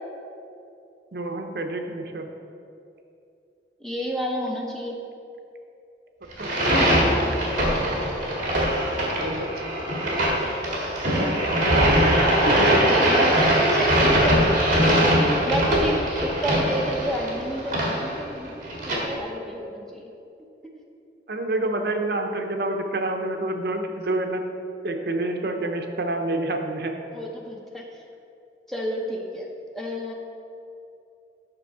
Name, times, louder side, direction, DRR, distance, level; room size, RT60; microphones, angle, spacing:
voice 1, 1.1-2.3 6.2-7.1 8.9-9.6 12.5-12.8 21.3-24.4 24.8-26.9, right 2 dB, 60° right, 4 dB, 0.7 m, -28 dB
voice 2, 3.8-5.0 7.0-7.3 10.4-10.5 10.8-11.2 11.6-13.9 14.2-14.3 15.0-15.1 15.5-20.1 27.1-28.0 28.7-29.5 29.7-30.1, equal, ahead, -1 dB, 0.7 m, -31 dB
sound 1, 6.3-19.0, equal, 45° right, 2.0 m, -21 dB
8.7 x 6.0 x 4.7 m, 2.7 s
head